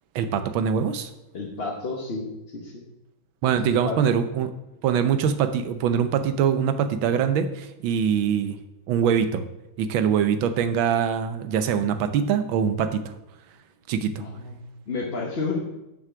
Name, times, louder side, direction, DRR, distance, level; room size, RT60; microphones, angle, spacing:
voice 1, 0.1-1.1 3.4-4.5 4.8-8.6 8.9-9.4 9.8-13.1 13.9-14.2, right 7 dB, 85° right, 10 dB, 1.5 m, -23 dB
voice 2, 1.3-2.8 3.7-4.0 14.2-15.6, left 4 dB, 35° left, -3 dB, 1.1 m, -31 dB
7.2 x 6.2 x 6.9 m, 0.94 s
omnidirectional pair, 2.1 m